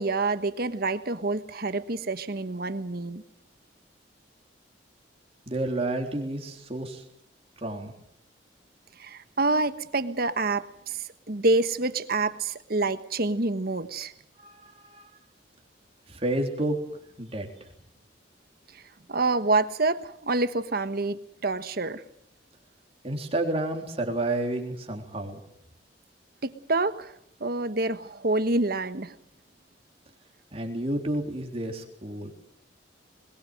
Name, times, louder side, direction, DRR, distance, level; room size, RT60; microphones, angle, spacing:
voice 1, 0.0-3.2 9.0-14.1 19.1-22.0 26.4-27.1 27.4-29.1, right 2 dB, 55° right, 12 dB, 1.3 m, -27 dB
voice 2, 5.5-7.0 7.6-7.9 14.4-15.1 16.1-16.8 17.2-17.7 23.0-25.4 30.5-32.3, right 1 dB, 35° right, 2 dB, 3.6 m, -30 dB
22.0 x 21.5 x 7.8 m, 0.74 s
head